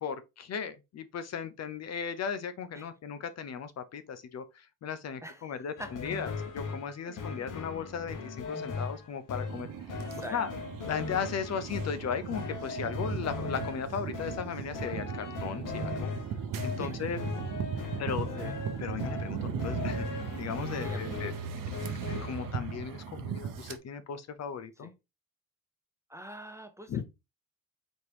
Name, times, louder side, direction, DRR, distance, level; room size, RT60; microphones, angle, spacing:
voice 1, 0.0-10.0 10.3-10.5 10.9-16.1 16.6-17.2 18.0-18.3 18.8-21.6 22.2-24.9 26.9-27.0, left 7 dB, 50° left, 0.6 m, -36 dB
sound 1, 5.8-22.5, left 4 dB, 70° left, 1.1 m, -38 dB
voice 2, 7.1-7.5 10.0-10.4 16.8-17.3 17.7-18.6 20.8-21.4 24.8-24.9 26.1-27.0, equal, 10° right, 0.5 m, -46 dB
sound 2, 9.5-23.8, right 7 dB, 80° right, 0.7 m, -37 dB
4.3 x 2.9 x 3.3 m
cardioid pair, 125°, 33 cm